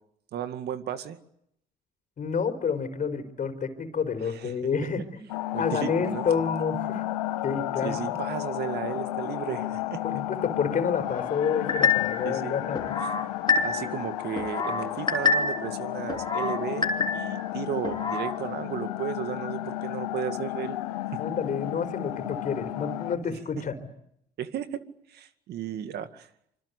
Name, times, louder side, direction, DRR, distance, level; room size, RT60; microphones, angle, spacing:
voice 1, 0.3-1.2 4.2-5.1 5.5-6.3 7.8-10.0 12.2-12.5 13.6-20.8 21.1-21.2 23.2-23.6 24.4-24.8 25.1-26.3, right 9 dB, 65° right, 10 dB, 2.1 m, -34 dB
voice 2, 2.2-5.2 5.6-7.0 7.4-8.0 10.0-13.0 21.2-23.9, left 6 dB, 45° left, 8 dB, 4.4 m, -29 dB
sound 1, 5.3-23.2, left 15 dB, 90° left, 1.4 m, -33 dB
sound 2, 11.7-12.3 12.7-14.0 14.4-15.7 16.1-17.4 17.8-18.3, left 4 dB, 25° left, 3.2 m, -27 dB
26.0 x 25.0 x 8.3 m, 0.75 s
hypercardioid pair, 65°, 19 cm